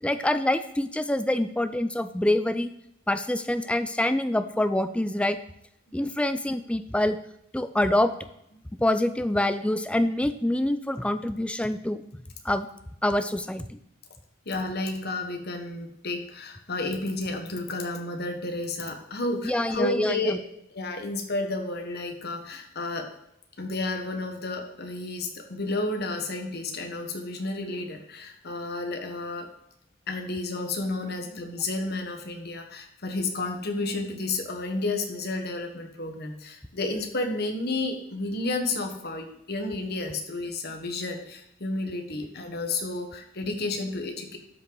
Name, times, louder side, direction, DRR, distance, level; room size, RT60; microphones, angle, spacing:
voice 1, 0.0-2.7 3.1-5.4 5.9-7.2 7.5-8.1 8.8-12.0 12.4-12.7 13.0-13.8 19.4-20.3, left 1 dB, 5° left, 10 dB, 0.4 m, -25 dB
voice 2, 14.4-20.4 20.7-23.1 23.6-29.5 30.1-44.4, left 2 dB, 50° left, 4 dB, 1.3 m, -31 dB
12.0 x 5.7 x 3.9 m, 0.78 s
head